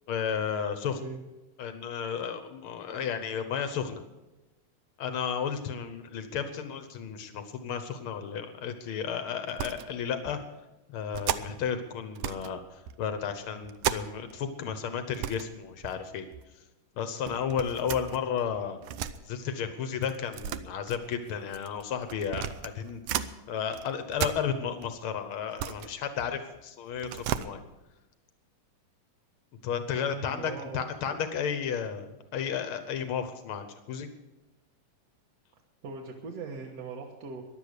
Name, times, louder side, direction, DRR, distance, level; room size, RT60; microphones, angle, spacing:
voice 1, 0.1-1.0 1.6-4.0 5.0-10.4 10.9-16.2 17.0-18.8 19.2-22.5 22.7-27.6 29.6-34.1, left 7 dB, 85° left, 9 dB, 1.1 m, -33 dB
sound 1, 9.5-9.9 10.2-10.4 11.1-11.7 12.2-12.6 12.9-14.4 14.7-14.8 15.1-15.5 15.8-16.5 17.3-19.2 20.0-23.3 23.7-24.9 25.3-26.6 26.9-27.5, right 10 dB, 75° right, 2.0 m, -35 dB
voice 2, 30.1-30.9 35.8-37.4, right 4 dB, 60° right, -1 dB, 2.0 m, -40 dB
15.0 x 11.0 x 6.7 m, 1.1 s
omnidirectional pair, 3.8 m